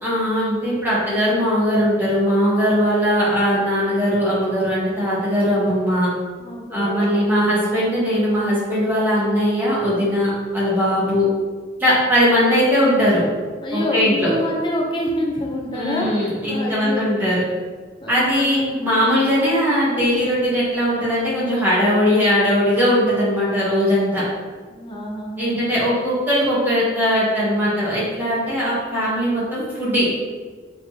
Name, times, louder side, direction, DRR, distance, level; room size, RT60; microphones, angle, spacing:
voice 1, 0.0-6.1 6.7-11.3 11.8-13.2 13.7-14.3 15.7-17.4 18.1-24.2 25.4-30.0, equal, 10° right, -8 dB, 1.4 m, -19 dB
voice 2, 6.4-7.1 13.6-16.1 16.4-17.1 18.0-18.7 24.7-25.5, left 1 dB, 25° left, -1 dB, 0.6 m, -26 dB
4.4 x 3.7 x 2.8 m, 1.5 s
head